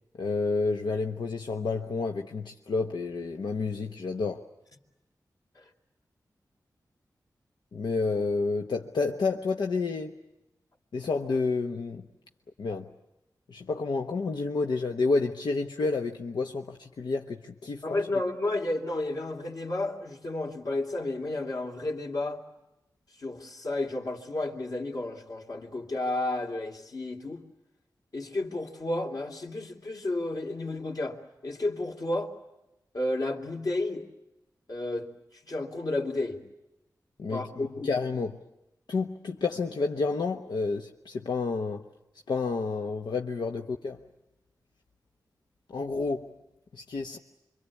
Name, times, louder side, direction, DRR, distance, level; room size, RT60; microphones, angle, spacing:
voice 1, 0.2-4.4 7.7-10.2 10.9-12.1 12.6-12.9 13.5-17.8 37.2-38.3 38.9-41.9 42.3-44.0 45.7-46.3 46.7-47.2, left 4 dB, 90° left, 1.1 m, -30 dB
voice 2, 17.8-22.4 23.2-27.4 28.1-32.3 32.9-34.1 34.7-35.1 35.5-36.4 37.2-37.9, left 2 dB, 60° left, 3.0 m, -32 dB
26.5 x 24.0 x 8.5 m
wide cardioid pair, 105°, 7 cm